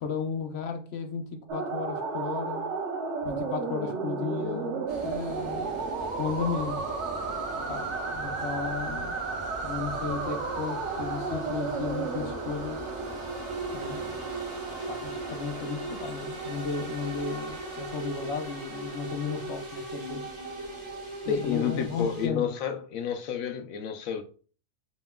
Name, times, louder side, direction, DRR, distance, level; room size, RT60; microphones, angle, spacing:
voice 1, 0.0-2.7 3.2-5.7 6.2-6.9 7.7-9.1 9.6-12.8 13.7-14.3 14.9-20.3 21.2-22.5, left 6 dB, 60° left, 0.8 m, -34 dB
sound 1, 1.5-19.6, right 4 dB, 60° right, 1.0 m, -34 dB
sound 2, 4.9-22.3, right 2 dB, 30° right, 1.2 m, -39 dB
voice 2, 21.3-24.2, left 8 dB, 85° left, 1.0 m, -30 dB
5.4 x 2.8 x 2.2 m
omnidirectional pair, 1.4 m